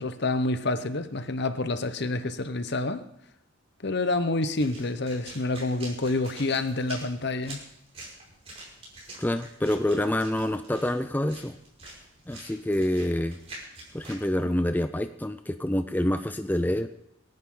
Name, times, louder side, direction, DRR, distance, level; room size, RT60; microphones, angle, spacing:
voice 1, 0.0-3.0 3.8-7.6, left 2 dB, 55° left, 10 dB, 1.0 m, -28 dB
sound 1, 4.4-14.2, right 1 dB, 30° right, 5.9 m, -46 dB
voice 2, 9.2-11.6 12.3-13.4 13.9-16.9, left 1 dB, 10° left, 9 dB, 0.5 m, -27 dB
27.0 x 11.0 x 3.9 m, 0.77 s
head